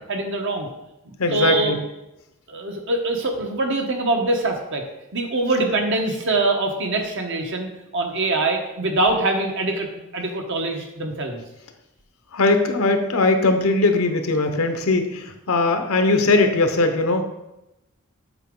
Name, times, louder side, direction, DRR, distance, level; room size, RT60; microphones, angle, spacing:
voice 1, 0.1-0.7 1.0-1.7 2.5-4.8 5.1-7.7 7.9-11.4, right 2 dB, 60° right, 2 dB, 1.1 m, -23 dB
voice 2, 1.2-1.8 12.3-17.2, left 2 dB, 80° left, 6 dB, 0.9 m, -20 dB
8.1 x 5.1 x 3.8 m, 0.92 s
head